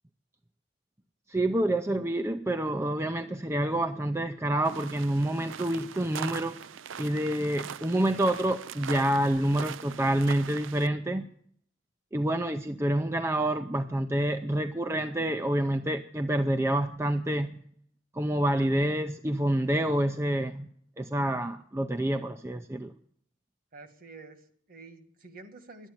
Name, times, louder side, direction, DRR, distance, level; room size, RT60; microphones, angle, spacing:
voice 1, 1.3-6.6 7.0-11.3 12.1-17.6 18.1-20.7 21.0-22.9, right 1 dB, 15° right, 7 dB, 0.5 m, -28 dB
sound 1, 4.6-10.9, right 8 dB, 80° right, 0.5 m, -41 dB
voice 2, 23.7-25.9, right 3 dB, 45° right, 8 dB, 1.6 m, -49 dB
11.5 x 9.1 x 9.6 m, 0.62 s
head